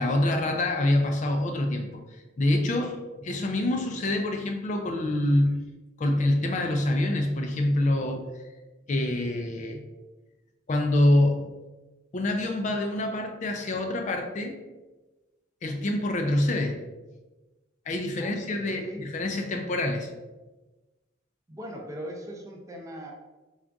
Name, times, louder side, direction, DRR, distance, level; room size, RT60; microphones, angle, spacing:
voice 1, 0.0-5.6 6.0-8.2 8.9-9.8 10.7-11.5 12.1-14.6 15.6-16.8 17.9-20.1, left 1 dB, 40° left, 4 dB, 0.4 m, -26 dB
voice 2, 18.2-19.1 21.5-23.1, equal, 15° right, 0 dB, 0.5 m, -40 dB
3.9 x 2.4 x 3.4 m, 1.1 s
head